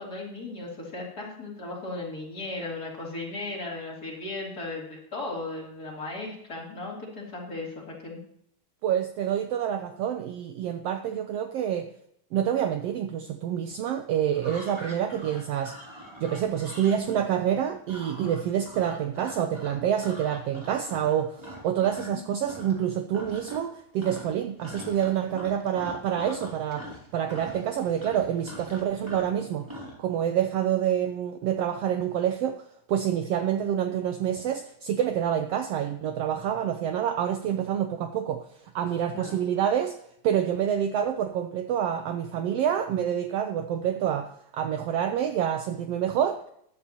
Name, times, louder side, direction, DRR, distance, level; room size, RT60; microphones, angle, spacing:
voice 1, 0.0-8.2 22.0-22.2 39.1-39.4, left 2 dB, 30° left, -3 dB, 3.3 m, -36 dB
voice 2, 8.8-11.9 12.3-15.7 16.2-26.9 27.1-29.7 30.0-32.6 32.9-38.4 38.7-39.9 40.2-46.4, right 9 dB, 85° right, 7 dB, 1.3 m, -27 dB
sound 1, 14.3-22.1 22.4-22.9 23.1-23.7 24.0-30.0, equal, 10° right, 2.2 m, -43 dB
14.0 x 11.0 x 2.9 m, 0.71 s
omnidirectional pair, 3.6 m